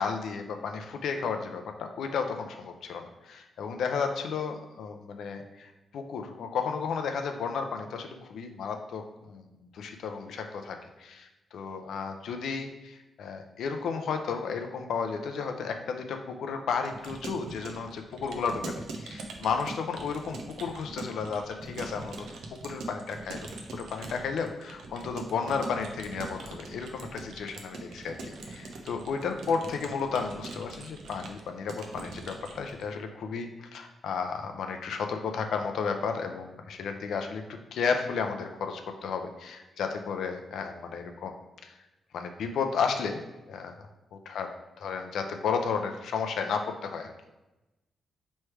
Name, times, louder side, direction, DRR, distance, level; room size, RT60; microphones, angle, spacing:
voice 1, 0.0-9.0 9.3-9.5 9.7-22.3 22.6-23.4 23.7-28.2 28.5-37.4 37.7-41.3 41.6-41.7 42.1-43.2 43.5-43.7 44.3-44.5 44.8-47.1, left 5 dB, 80° left, 5 dB, 0.4 m, -33 dB
Keyboard (musical) / Computer keyboard, 16.8-32.8, right 3 dB, 80° right, 0.5 m, -42 dB
3.2 x 3.1 x 4.6 m, 1.0 s
wide cardioid pair, 165°, 0 cm